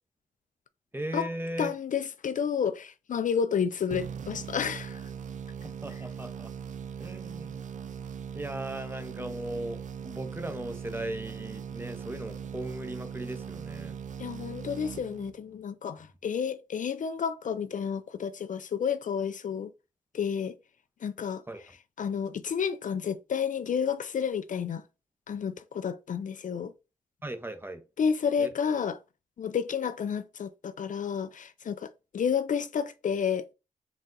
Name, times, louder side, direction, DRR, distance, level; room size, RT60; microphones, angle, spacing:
voice 1, 0.9-1.7 5.6-6.5 7.0-7.6 8.3-14.0 21.5-21.6 27.2-27.8 28.4-28.5, right 1 dB, 15° right, 0.8 m, -37 dB
voice 2, 1.6-5.0 14.2-19.7 20.1-20.6 21.0-21.4 22.0-24.8 25.3-26.7 28.0-29.0 29.4-33.5, left 7 dB, 55° left, 0.4 m, -30 dB
sound 1, 3.9-15.6, right 7 dB, 55° right, 0.4 m, -40 dB
4.0 x 2.4 x 3.8 m
cardioid pair, 55°, 16 cm